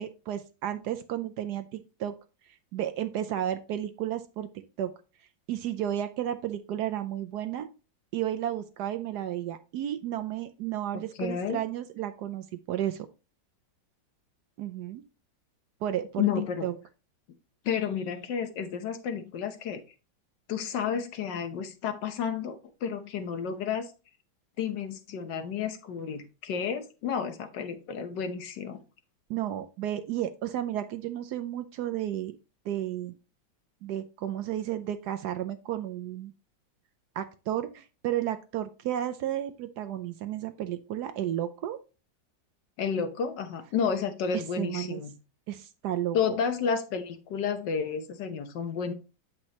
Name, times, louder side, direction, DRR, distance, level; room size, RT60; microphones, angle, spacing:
voice 1, 0.0-2.1 2.7-4.5 4.8-4.9 5.5-7.7 8.1-13.1 14.6-15.0 15.8-16.3 16.6-16.7 29.3-32.3 32.6-33.1 33.8-36.3 37.2-41.8 44.3-45.0 45.5-46.2, right 11 dB, 75° right, 8 dB, 1.0 m, -32 dB
voice 2, 10.9-11.6 16.2-16.7 17.6-19.8 20.5-23.9 24.6-28.8 42.8-45.1 46.1-48.9, left 7 dB, 70° left, 7 dB, 1.5 m, -31 dB
8.1 x 5.3 x 2.9 m, 0.32 s
omnidirectional pair, 2.0 m